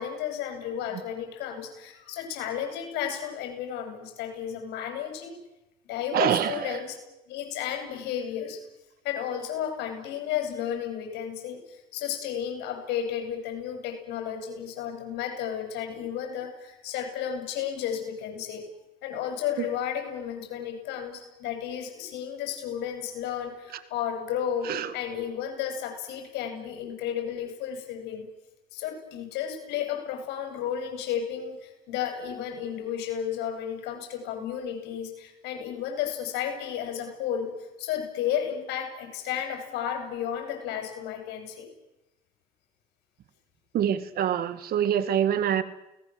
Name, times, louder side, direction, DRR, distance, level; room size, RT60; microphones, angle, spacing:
voice 1, 0.0-5.4 5.9-7.0 7.3-8.6 9.0-18.6 19.0-28.3 28.7-37.5 37.8-41.7, left 9 dB, 90° left, 5 dB, 7.5 m, -33 dB
voice 2, 6.1-6.8 24.7-24.9 43.7-45.6, right 9 dB, 65° right, 14 dB, 1.9 m, -25 dB
30.0 x 19.5 x 7.9 m, 0.94 s
cardioid pair, 110°, 17 cm